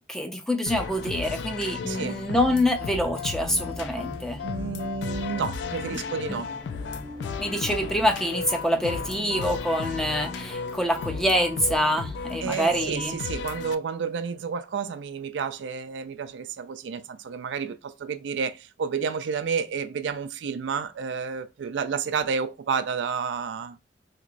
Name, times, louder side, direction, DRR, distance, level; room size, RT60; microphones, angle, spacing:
voice 1, 0.1-4.4 6.3-6.4 7.4-13.1, equal, 5° left, 0.4 m, -26 dB
sound 1, 0.7-13.7, left 5 dB, 75° left, 0.3 m, -35 dB
voice 2, 1.9-2.2 4.4-6.6 12.4-23.8, right 6 dB, 85° right, 0.4 m, -30 dB
sound 2, 2.5-14.0, left 1 dB, 30° left, 1.2 m, -43 dB
3.0 x 2.9 x 2.5 m
head